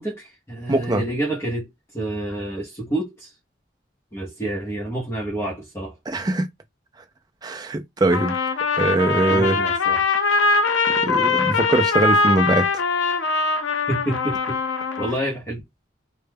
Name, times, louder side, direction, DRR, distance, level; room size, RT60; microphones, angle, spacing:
voice 1, 0.0-1.7 1.9-3.3 4.1-6.0 9.3-10.0 13.9-14.6 15.0-15.6, right 1 dB, 15° left, 0.7 m, -28 dB
voice 2, 0.7-1.0 6.1-6.5 7.4-8.3 8.8-9.6 10.9-12.7, right 2 dB, 20° right, 0.3 m, -21 dB
Trumpet, 8.1-15.2, left 4 dB, 85° left, 0.5 m, -22 dB
2.2 x 2.0 x 3.3 m
head